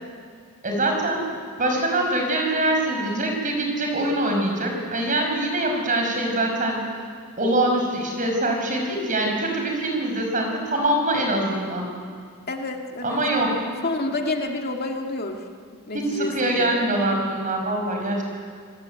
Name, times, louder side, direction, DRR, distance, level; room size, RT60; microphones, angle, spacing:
voice 1, 0.6-1.3 1.6-6.8 7.4-11.9 13.0-13.5 15.9-18.2, right 1 dB, 35° right, 2 dB, 6.0 m, -24 dB
voice 2, 12.5-15.4 15.9-16.7, left 2 dB, 45° left, 2 dB, 2.1 m, -29 dB
27.5 x 18.5 x 9.3 m, 2.1 s
head